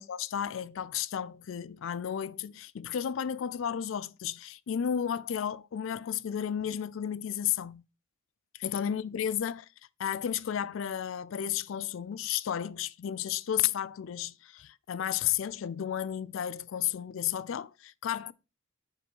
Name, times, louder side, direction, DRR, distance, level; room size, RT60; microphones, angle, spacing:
voice 1, 0.0-7.8 8.6-9.7 10.0-18.3, left 9 dB, 60° left, 0.3 m, -33 dB
7.8 x 4.4 x 4.5 m
head